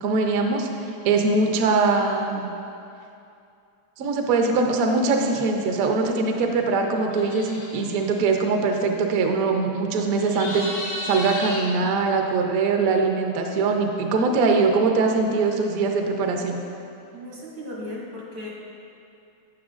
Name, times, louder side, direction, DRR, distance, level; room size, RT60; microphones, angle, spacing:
voice 1, 0.0-0.7 1.0-2.5 4.0-16.6, right 4 dB, 65° right, 3 dB, 0.9 m, -22 dB
sound 1, 7.1-8.0 10.2-11.6, left 1 dB, 80° left, 2.6 m, -33 dB
voice 2, 17.1-18.5, left 1 dB, 80° right, -5 dB, 2.8 m, -36 dB
11.0 x 9.4 x 2.5 m, 2.7 s
omnidirectional pair, 2.3 m